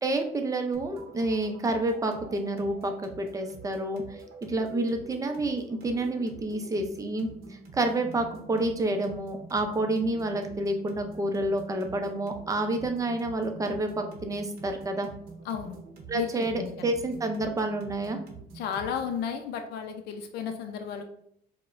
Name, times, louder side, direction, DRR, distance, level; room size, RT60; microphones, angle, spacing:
voice 1, 0.0-15.1 16.1-18.2, right 2 dB, 20° right, 5 dB, 0.5 m, -29 dB
sound 1, 0.7-19.2, right 4 dB, 70° right, 0.7 m, -47 dB
voice 2, 15.4-15.8 16.1-16.7 18.5-21.0, left 7 dB, 75° left, 6 dB, 0.4 m, -33 dB
4.6 x 2.1 x 2.4 m, 0.69 s
cardioid pair, 110°, 17 cm